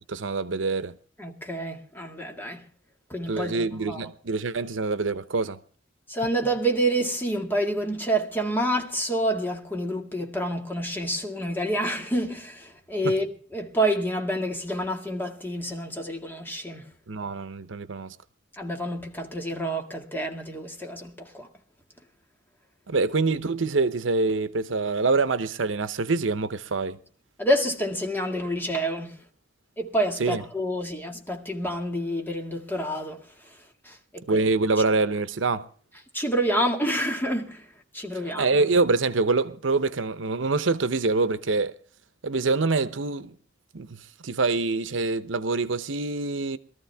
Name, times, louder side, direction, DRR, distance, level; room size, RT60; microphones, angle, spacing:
voice 1, 0.1-0.9 3.3-5.6 17.1-18.2 22.9-27.0 30.2-30.4 34.3-35.6 38.3-41.7 42.2-43.3 43.7-44.0 44.2-46.6, right 3 dB, 80° right, 0.8 m, -25 dB
voice 2, 1.2-2.7 3.1-4.1 6.1-16.9 18.6-21.5 27.4-29.2 29.8-33.2 33.9-34.5 36.1-37.6 37.9-38.5, right 1 dB, 10° left, 2.1 m, -28 dB
22.5 x 14.0 x 3.5 m
head